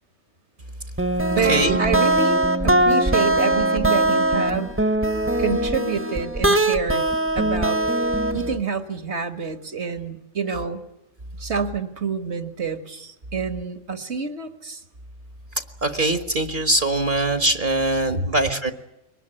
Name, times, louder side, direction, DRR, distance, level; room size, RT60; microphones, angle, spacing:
sound 1, 1.0-8.6, right 1 dB, 10° right, 1.2 m, -21 dB
voice 1, 1.3-4.7 5.4-7.1 7.4-7.8 8.3-10.8 11.4-14.8, right 5 dB, 65° right, 8 dB, 2.0 m, -27 dB
voice 2, 15.8-18.7, right 2 dB, 45° right, 8 dB, 1.5 m, -22 dB
23.0 x 20.0 x 9.8 m, 0.90 s
omnidirectional pair, 1.3 m